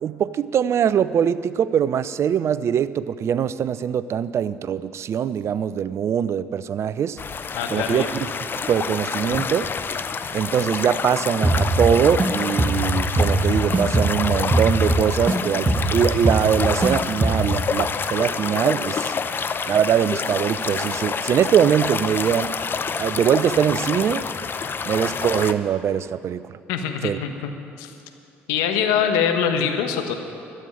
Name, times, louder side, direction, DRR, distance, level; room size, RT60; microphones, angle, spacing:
voice 1, 0.0-7.2 7.7-8.1 8.7-9.7 10.3-19.1 19.7-22.5 23.0-24.2 24.9-26.6 27.0-27.2, right 8 dB, 50° right, 16 dB, 0.5 m, -22 dB
sound 1, 7.2-25.5, left 5 dB, 35° left, 0.7 m, -28 dB
voice 2, 7.5-8.1 26.7-27.5 27.8-27.9 28.5-30.1, left 7 dB, 75° left, 6 dB, 1.2 m, -23 dB
sound 2, 11.4-12.3 12.6-15.4 15.7-16.9 17.2-17.6, right 2 dB, 25° right, 1.5 m, -21 dB
12.5 x 7.8 x 10.0 m, 2.6 s
hypercardioid pair, 60°, 6 cm